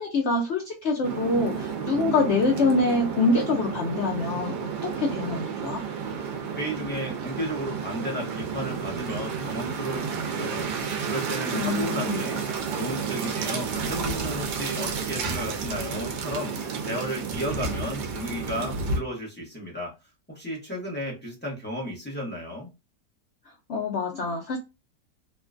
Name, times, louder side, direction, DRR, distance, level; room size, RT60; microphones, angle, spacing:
voice 1, 0.0-5.8 11.5-12.2 23.7-24.6, left 3 dB, 80° left, 1 dB, 0.6 m, -25 dB
sound 1, 1.0-19.0, right 5 dB, 85° right, 1.2 m, -31 dB
voice 2, 6.1-12.4 12.7-19.9 20.3-22.7, equal, 10° left, -5 dB, 0.8 m, -34 dB
3.6 x 2.2 x 2.4 m, 0.26 s
omnidirectional pair, 1.8 m